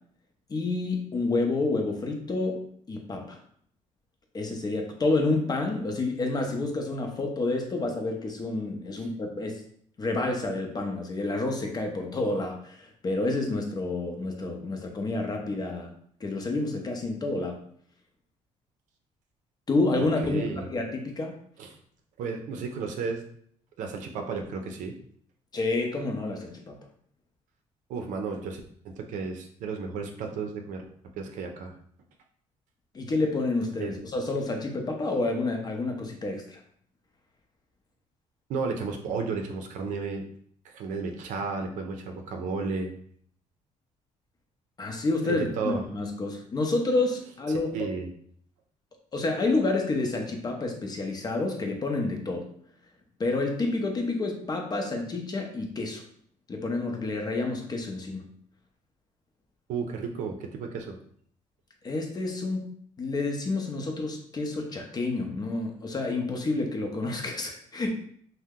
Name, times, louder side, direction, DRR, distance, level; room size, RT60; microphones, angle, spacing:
voice 1, 0.5-3.4 4.3-9.6 10.0-15.9 16.2-17.6 19.7-21.3 25.5-26.8 32.9-36.6 44.8-47.7 49.1-52.4 53.2-56.0 56.5-58.2 61.8-62.7 63.0-67.9, left 2 dB, 30° left, 3 dB, 0.6 m, -29 dB
voice 2, 20.2-20.7 21.6-21.8 22.2-23.2 23.8-24.9 27.9-30.9 31.2-31.8 33.8-34.0 38.5-40.3 40.6-42.9 45.2-45.8 47.5-48.1 59.7-61.0, right 4 dB, 75° right, 4 dB, 0.5 m, -33 dB
2.7 x 2.1 x 3.5 m, 0.62 s
cardioid pair, 100°, 13 cm